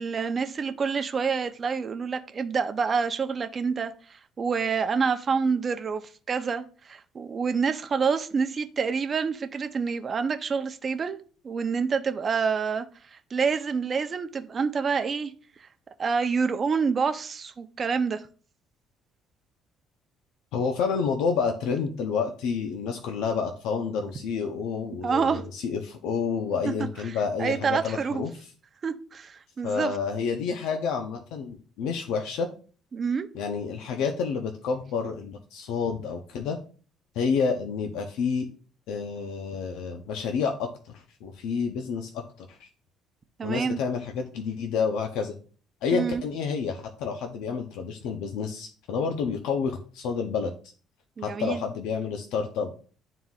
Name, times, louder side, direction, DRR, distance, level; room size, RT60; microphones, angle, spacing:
voice 1, 0.0-11.2 11.4-12.8 13.1-15.3 16.0-18.2 25.0-25.4 27.1-28.2 28.8-29.9 32.9-33.3 43.4-43.8 45.9-46.2 51.2-51.6, right 5 dB, 30° right, 0.6 m, -27 dB
voice 2, 20.5-28.3 29.6-32.5 33.3-36.6 37.1-38.5 38.9-42.7 43.4-45.3 45.8-50.5 51.2-52.7, left 5 dB, 90° left, 0.7 m, -29 dB
11.0 x 3.9 x 2.4 m
cardioid pair, 135°, 0 cm